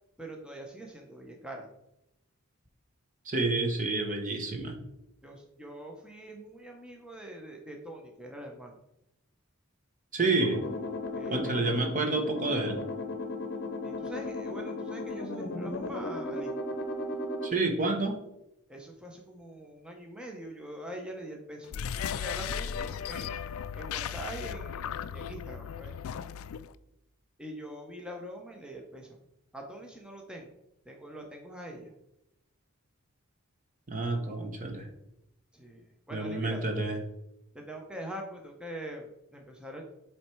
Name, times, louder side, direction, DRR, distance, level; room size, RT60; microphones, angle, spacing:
voice 1, 0.2-1.7 5.2-8.8 11.1-11.7 13.8-16.5 18.7-23.4 23.7-25.9 27.4-29.2 29.5-30.5 30.9-31.9 35.5-36.6 37.5-39.8, right 1 dB, 5° right, 1 dB, 0.7 m, -43 dB
voice 2, 3.3-4.8 10.1-10.6 11.3-12.8 17.4-18.2 33.9-34.9 36.1-37.0, right 3 dB, 40° right, 3 dB, 1.0 m, -29 dB
sound 1, 10.4-17.5, left 2 dB, 55° left, 0.8 m, -36 dB
sound 2, 21.7-26.7, left 8 dB, 70° left, 0.3 m, -36 dB
7.7 x 3.2 x 4.5 m, 0.86 s
head